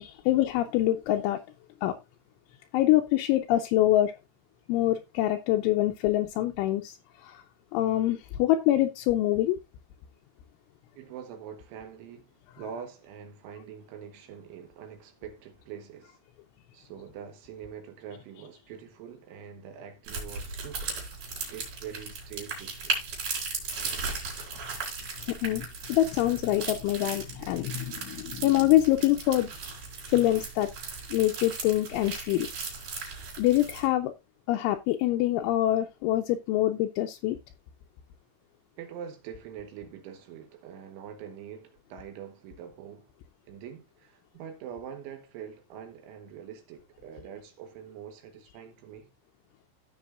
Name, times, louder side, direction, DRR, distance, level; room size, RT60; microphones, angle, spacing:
voice 1, 0.0-1.4 1.8-2.0 2.7-4.2 4.7-7.0 7.2-7.4 7.7-9.6 25.3-29.5 30.1-30.7 31.1-32.5 33.4-34.1 34.5-37.4, left 14 dB, 80° left, 2.9 m, -25 dB
voice 2, 11.0-16.2 16.7-21.0 21.5-23.0 38.8-43.1 43.5-49.1, right 8 dB, 75° right, 3.4 m, -44 dB
sound 1, 20.0-33.9, right 4 dB, 50° right, 5.0 m, -37 dB
15.0 x 6.7 x 2.4 m
omnidirectional pair, 5.9 m